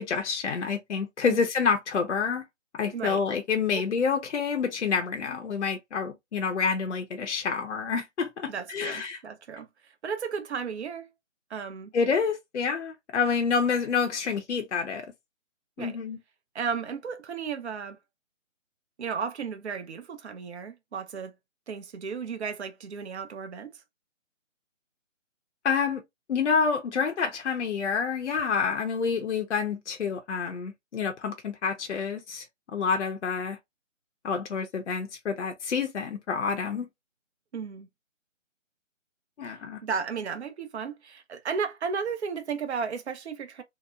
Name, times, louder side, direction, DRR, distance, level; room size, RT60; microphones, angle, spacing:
voice 1, 0.0-2.4 2.7-9.2 11.9-15.1 15.8-16.2 25.6-26.0 26.3-32.5 32.7-33.6 34.2-36.9 39.4-39.8, left 5 dB, 65° left, 0.6 m, -28 dB
voice 2, 2.9-3.2 8.5-11.1 11.5-11.9 15.8-16.0 16.5-18.0 19.0-21.3 21.7-23.7 37.5-37.9 39.4-39.6 39.8-43.6, right 6 dB, 60° right, 0.6 m, -34 dB
2.8 x 2.0 x 2.2 m
figure-of-eight pair, 155°, 39 cm